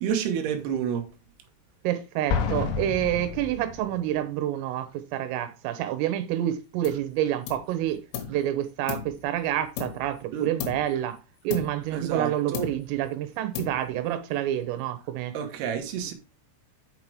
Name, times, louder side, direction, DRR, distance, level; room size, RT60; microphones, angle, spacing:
voice 1, 0.0-1.1 10.3-10.5 11.9-12.7 15.3-16.1, right 8 dB, 65° right, 2.9 m, -29 dB
voice 2, 1.9-8.0 8.3-15.4, right 12 dB, 80° right, 3.7 m, -28 dB
Explosion, 2.3-4.1, left 6 dB, 70° left, 3.6 m, -29 dB
sound 1, 6.8-7.1 7.5-8.4 8.9-10.2 10.6-11.0 11.5-12.3 12.5-13.1 13.5-14.1, left 9 dB, 85° left, 4.1 m, -37 dB
7.7 x 5.8 x 4.6 m
omnidirectional pair, 5.9 m